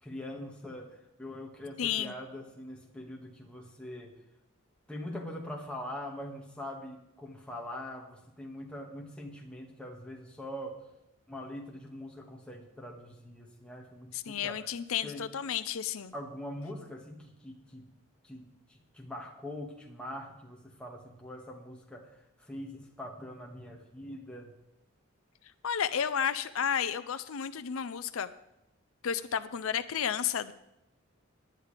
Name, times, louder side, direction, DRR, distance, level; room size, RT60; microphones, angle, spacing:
voice 1, 0.0-4.2 4.9-10.8 11.3-14.7 15.0-15.3 16.1-17.9 18.2-24.5, left 1 dB, 5° left, -1 dB, 1.8 m, -43 dB
voice 2, 1.8-2.1 14.1-16.1 25.6-28.3 29.0-30.5, left 8 dB, 85° left, 13 dB, 0.5 m, -32 dB
18.5 x 10.5 x 3.4 m, 0.90 s
head